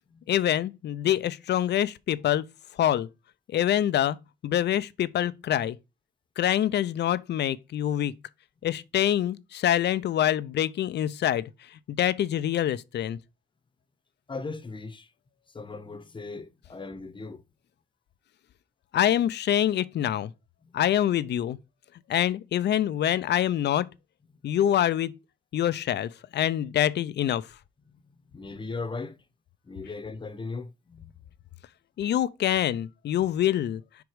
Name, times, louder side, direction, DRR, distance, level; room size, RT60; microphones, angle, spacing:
voice 1, 0.3-2.4 2.8-3.1 3.5-4.2 4.4-5.8 6.4-8.1 8.6-11.5 11.9-13.2 18.9-20.3 20.7-21.6 22.1-23.9 24.4-25.1 25.5-27.5 32.0-33.8, left 11 dB, 60° left, 0.5 m, -25 dB
voice 2, 14.3-15.1 15.5-17.4 20.6-20.7 28.3-29.2 29.6-31.1, left 3 dB, 25° left, 0.9 m, -38 dB
5.1 x 4.7 x 4.9 m
cardioid pair, 90°, 20 cm